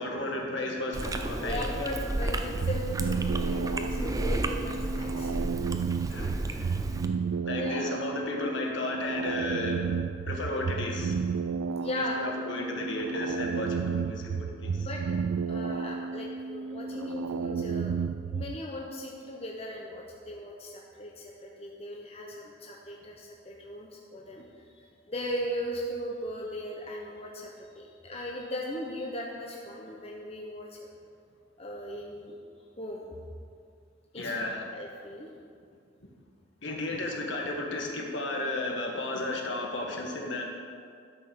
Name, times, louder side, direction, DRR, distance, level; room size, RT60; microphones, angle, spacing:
voice 1, 0.0-1.9 6.1-6.7 7.4-9.9 10.2-11.2 12.0-14.9 34.1-34.7 36.6-40.4, left 2 dB, 65° left, 0 dB, 1.7 m, -33 dB
Chewing mastication, 0.9-7.1, right 1 dB, 15° right, 0.5 m, -32 dB
voice 2, 1.3-5.5 7.5-8.0 11.8-12.3 14.8-15.2 15.4-17.9 18.3-24.7 25.1-30.9 31.6-32.4 32.8-33.2 34.1-34.4 34.7-35.3, left 1 dB, 30° left, -2 dB, 1.0 m, -38 dB
sound 1, 2.5-18.6, right 5 dB, 85° right, 0.4 m, -32 dB
12.0 x 6.0 x 6.4 m, 2.2 s
head